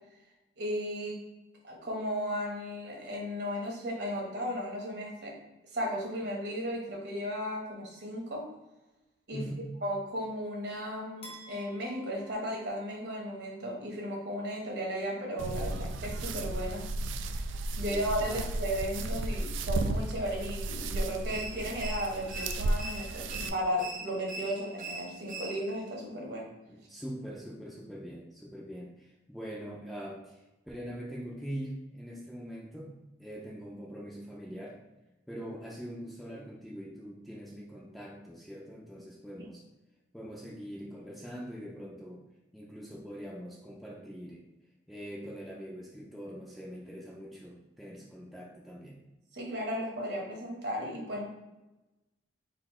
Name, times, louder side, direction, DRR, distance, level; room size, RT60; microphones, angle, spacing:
voice 1, 0.6-1.2 1.6-5.3 5.7-8.4 9.3-9.4 9.8-16.8 17.7-26.5 49.3-51.3, equal, 60° right, -1 dB, 1.1 m, -35 dB
voice 2, 9.3-9.7 17.8-18.5 26.7-34.8 35.3-39.6 40.1-42.2 42.5-44.4 44.9-49.0, equal, ahead, -4 dB, 0.5 m, -43 dB
sound 1, 11.2-13.4, right 3 dB, 30° left, 0.8 m, -52 dB
sound 2, 15.4-23.5, right 2 dB, 80° right, 0.4 m, -34 dB
sound 3, 21.3-25.9, right 2 dB, 45° right, 0.6 m, -42 dB
4.2 x 2.6 x 4.2 m, 1.0 s
head